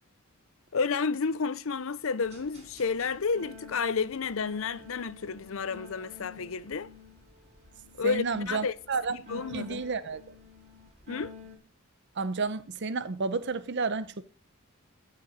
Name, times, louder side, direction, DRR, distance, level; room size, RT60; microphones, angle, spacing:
voice 1, 0.7-6.9 8.0-8.7 9.1-9.8 11.1-11.3, left 5 dB, 65° left, 0.6 m, -31 dB
sound 1, 2.2-11.6, left 4 dB, 30° right, 5.3 m, -51 dB
voice 2, 8.0-9.2 9.5-10.2 12.2-14.2, right 4 dB, 55° right, 0.7 m, -31 dB
14.0 x 5.8 x 7.7 m
head